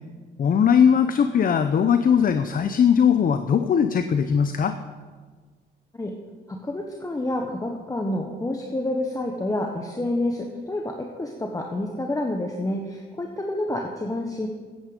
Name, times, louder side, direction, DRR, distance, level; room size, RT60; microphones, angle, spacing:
voice 1, 0.4-4.7, left 7 dB, 45° left, 9 dB, 0.7 m, -19 dB
voice 2, 6.5-14.5, left 1 dB, 15° left, 1 dB, 1.3 m, -28 dB
14.5 x 10.0 x 5.2 m, 1.5 s
cardioid pair, 90°, 20 cm